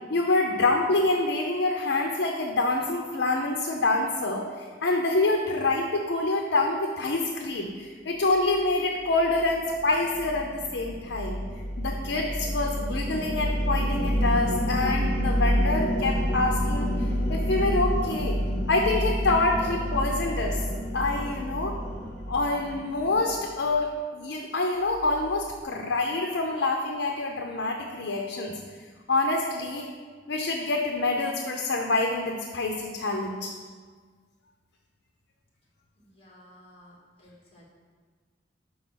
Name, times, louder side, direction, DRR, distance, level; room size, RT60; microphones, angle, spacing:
voice 1, 0.1-11.4 11.8-18.4 18.7-20.6 20.9-21.7 22.3-28.5 29.1-29.9 30.3-33.5, left 2 dB, 85° left, 2 dB, 0.6 m, -26 dB
sound 1, 9.2-23.7, equal, 50° left, 1.1 m, -28 dB
voice 2, 36.0-37.7, equal, 30° left, -4 dB, 1.9 m, -54 dB
5.5 x 5.0 x 6.1 m, 1.5 s
head